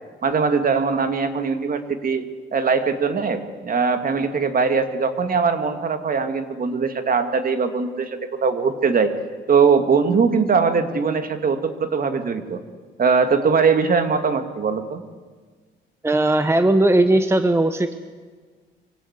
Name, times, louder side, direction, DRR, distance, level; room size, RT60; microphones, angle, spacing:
voice 1, 0.2-2.3 2.5-9.1 9.5-12.6 13.0-15.0, right 5 dB, 45° right, 8 dB, 2.3 m, -21 dB
voice 2, 16.0-18.0, right 1 dB, 15° right, 10 dB, 1.1 m, -18 dB
24.5 x 17.5 x 8.3 m, 1.5 s
cardioid pair, 90°, 20 cm